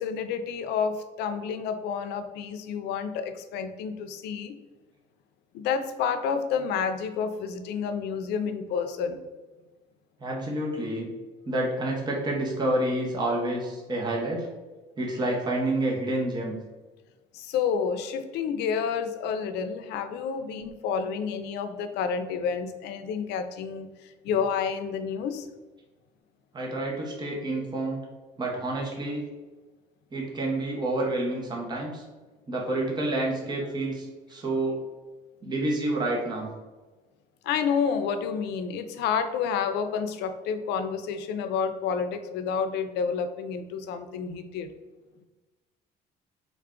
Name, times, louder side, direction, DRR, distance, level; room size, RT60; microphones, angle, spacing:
voice 1, 0.0-4.6 5.5-9.2 17.3-25.5 37.4-44.7, left 6 dB, 80° left, 9 dB, 0.4 m, -29 dB
voice 2, 10.2-11.1 11.5-14.5 15.0-16.5 26.5-28.0 28.4-29.2 30.1-32.0 32.5-34.8 35.4-36.5, right 1 dB, 25° right, -2 dB, 0.9 m, -28 dB
3.4 x 2.3 x 3.6 m, 1.2 s
cardioid pair, 110°, 17 cm